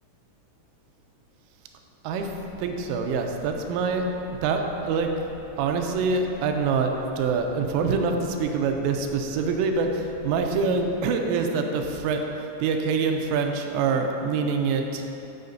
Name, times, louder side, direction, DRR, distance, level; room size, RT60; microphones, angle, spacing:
sound 1, 2.1-11.1, equal, 75° left, 3.6 m, -48 dB
voice 1, 2.6-5.1 5.6-15.0, right 4 dB, 85° right, 4 dB, 3.2 m, -25 dB
14.5 x 5.7 x 2.7 m, 3.0 s
omnidirectional pair, 5.7 m